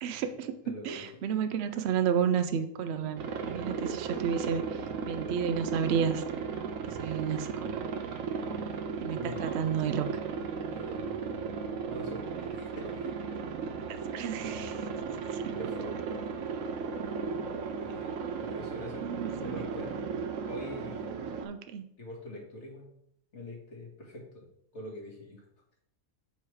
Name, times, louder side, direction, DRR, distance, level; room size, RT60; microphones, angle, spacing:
voice 1, 0.0-0.5 0.8-6.2 7.0-7.9 9.0-10.1 13.9-14.9 15.3-15.4 19.0-19.5 21.4-21.9, right 7 dB, 85° right, 10 dB, 0.5 m, -31 dB
voice 2, 0.6-1.2 9.0-9.6 10.7-11.3 11.6-13.4 15.0-15.1 15.5-15.9 17.8-20.1 20.5-21.4 22.0-22.9 23.3-24.4 24.7-25.4, left 1 dB, 45° left, -2 dB, 2.0 m, -44 dB
Aircraft, 3.2-21.5, right 5 dB, 65° right, 1.0 m, -36 dB
8.1 x 3.2 x 4.7 m, 0.73 s
omnidirectional pair, 1.7 m